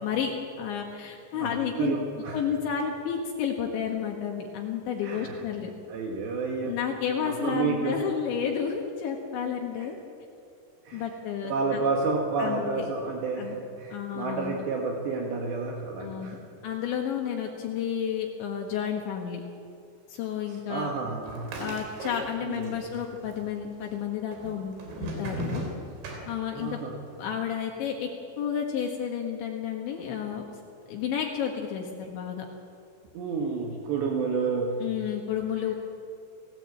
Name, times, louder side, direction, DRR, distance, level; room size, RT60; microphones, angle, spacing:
voice 1, 0.0-2.0 2.3-5.7 6.6-10.0 10.9-11.8 12.4-12.9 13.4-13.6 13.9-14.7 16.0-19.4 20.1-20.9 21.6-25.7 26.3-26.8 27.2-28.1 28.4-30.4 30.9-32.5 34.8-35.7, left 8 dB, 70° left, 1 dB, 3.8 m, -31 dB
voice 2, 1.3-2.4 5.0-5.4 5.9-6.8 7.2-8.0 9.8-9.9 10.9-11.1 11.4-16.4 20.5-21.6 22.4-22.8 26.5-27.0 33.1-34.8, right 4 dB, 65° right, 0 dB, 3.8 m, -30 dB
sound 1, 21.2-22.7 22.9-23.7 24.3-26.8, right 1 dB, 90° right, 6.5 m, -36 dB
29.5 x 16.5 x 8.6 m, 2.5 s
omnidirectional pair, 5.7 m